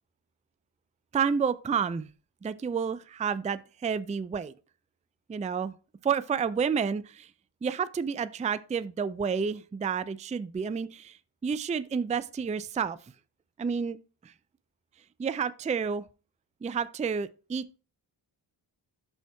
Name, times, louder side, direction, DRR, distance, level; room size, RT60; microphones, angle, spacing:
voice 1, 1.1-2.1 2.4-4.5 5.3-5.7 6.0-7.3 7.6-11.2 11.4-13.0 13.6-14.0 14.2-14.3 15.2-16.0 16.6-17.8, right 6 dB, 15° right, 0.4 m, -30 dB
12.5 x 4.5 x 2.3 m
cardioid pair, 45°, 49 cm